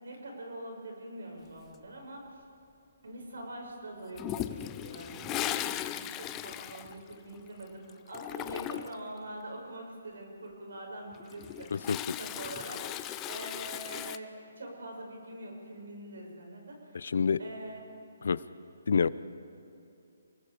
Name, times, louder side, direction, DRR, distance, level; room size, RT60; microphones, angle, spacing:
voice 1, 0.0-2.4 3.0-11.9 12.2-17.0 17.4-17.9, right 1 dB, 80° right, 1 dB, 6.5 m, -44 dB
Toilet flush, 4.2-7.6 7.9-9.1 11.1-14.2, left 13 dB, 15° left, 0.4 m, -37 dB
voice 2, 17.0-17.4 18.2-18.4 18.9-19.1, left 6 dB, 65° left, 17 dB, 0.6 m, -26 dB
28.5 x 20.0 x 5.1 m, 2.7 s
hypercardioid pair, 165°, 0 cm